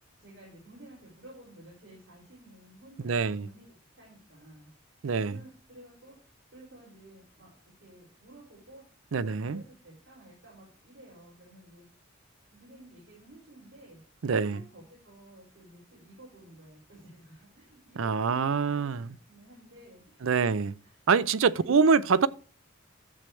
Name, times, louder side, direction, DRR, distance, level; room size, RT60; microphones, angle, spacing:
voice 1, 0.2-4.7 5.3-6.2 6.5-7.5 7.8-8.8 9.2-11.8 12.5-14.0 14.5-19.0 19.3-20.5 20.8-21.0 21.5-21.9, right 1 dB, 55° right, 5.8 m, -53 dB
voice 2, 3.0-3.5 5.0-5.4 9.1-9.6 14.2-14.6 18.0-19.1 20.2-20.7 21.1-22.3, right 5 dB, 70° right, 0.5 m, -25 dB
12.0 x 7.6 x 3.2 m
head